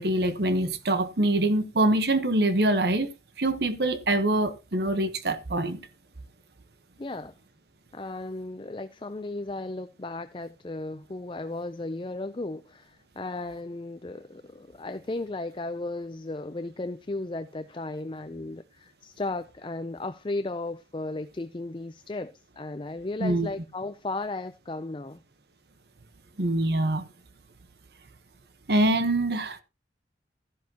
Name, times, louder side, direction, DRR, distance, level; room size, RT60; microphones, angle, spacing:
voice 1, 0.0-3.1 3.4-5.8 23.2-23.5 26.4-27.1 28.7-29.6, right 1 dB, 65° right, 1.1 m, -24 dB
voice 2, 7.0-7.3 7.9-25.2, left 2 dB, 30° left, 0.5 m, -35 dB
14.0 x 10.5 x 2.9 m
head